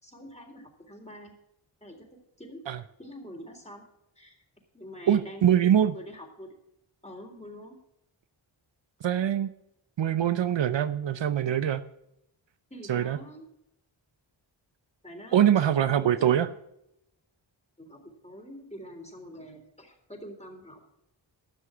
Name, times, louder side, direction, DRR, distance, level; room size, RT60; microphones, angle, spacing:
voice 1, 0.0-1.3 1.8-2.0 2.4-2.6 3.0-3.8 4.2-4.4 4.7-6.5 7.0-7.8 12.7-13.5 15.0-15.4 15.9-16.5 17.8-20.8, equal, 15° left, 2 dB, 3.8 m, -45 dB
voice 2, 5.1-6.0 9.0-9.5 10.0-11.8 12.9-13.2 15.3-16.5, right 10 dB, 65° right, 13 dB, 0.7 m, -23 dB
13.0 x 6.4 x 7.8 m, 0.81 s
cardioid pair, 50°, 47 cm